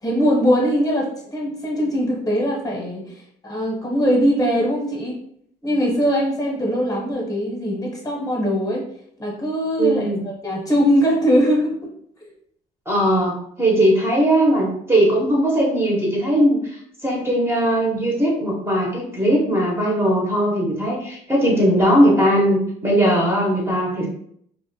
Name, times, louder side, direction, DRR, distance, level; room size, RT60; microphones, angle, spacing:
voice 1, 0.0-5.2 5.6-8.9 9.2-11.9, equal, 20° left, -2 dB, 0.8 m, -21 dB
voice 2, 9.8-10.2 12.9-16.6 17.0-24.1, right 1 dB, 15° right, -3 dB, 0.6 m, -19 dB
2.4 x 2.1 x 2.6 m, 0.67 s
cardioid pair, 110°, 17 cm